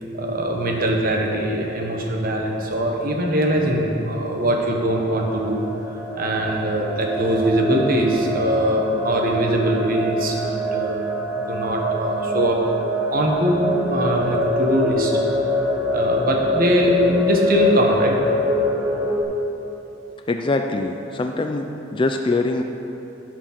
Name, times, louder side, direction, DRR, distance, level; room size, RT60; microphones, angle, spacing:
voice 1, 0.1-5.6 6.2-11.1 11.3-12.6 13.1-15.1 15.9-18.2, right 1 dB, 45° right, 0 dB, 1.2 m, -22 dB
sound 1, 4.8-19.2, left 1 dB, 5° right, 0.8 m, -25 dB
voice 2, 20.3-21.6 21.9-22.6, left 2 dB, 25° left, 4 dB, 0.3 m, -23 dB
11.5 x 5.1 x 5.9 m, 2.9 s
head